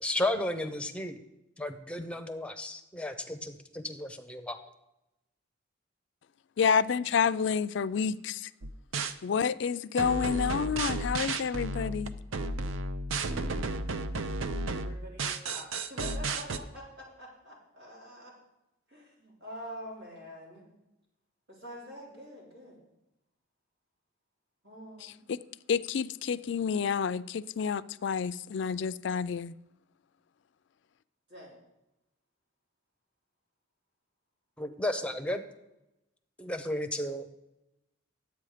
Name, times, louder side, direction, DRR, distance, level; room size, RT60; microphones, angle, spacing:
voice 1, 0.0-1.2 1.6-4.6 34.6-35.4 36.4-37.3, left 1 dB, 5° left, 0.7 m, -33 dB
voice 2, 6.6-8.5 9.2-12.1 25.0-25.4 25.7-29.5, left 6 dB, 60° left, 0.3 m, -29 dB
sound 1, 8.6-9.1 10.0-16.6, right 3 dB, 90° right, 0.6 m, -33 dB
voice 3, 14.7-18.3 18.9-20.7 21.5-22.8 24.6-25.3 31.3-31.6, equal, 75° right, 4.1 m, -46 dB
10.5 x 8.2 x 4.9 m
head